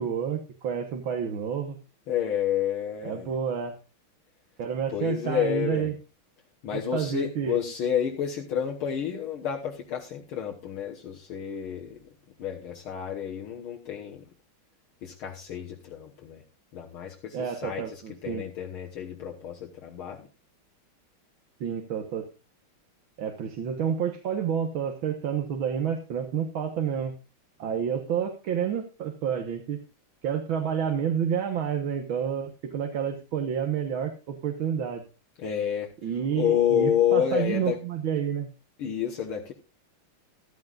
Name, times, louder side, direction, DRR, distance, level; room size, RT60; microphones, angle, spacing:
voice 1, 0.0-1.8 3.0-3.8 4.6-6.0 6.7-7.6 17.3-18.5 21.6-22.3 23.2-27.1 27.6-29.8 30.2-35.0 36.0-38.5, right 8 dB, 70° right, 5 dB, 2.0 m, -29 dB
voice 2, 2.1-3.3 4.9-5.9 6.6-12.1 12.4-14.2 15.0-16.4 16.7-20.3 35.4-35.9 36.4-37.8 38.8-39.5, left 9 dB, 80° left, -1 dB, 2.2 m, -29 dB
15.0 x 13.0 x 2.5 m, 0.31 s
omnidirectional pair, 2.3 m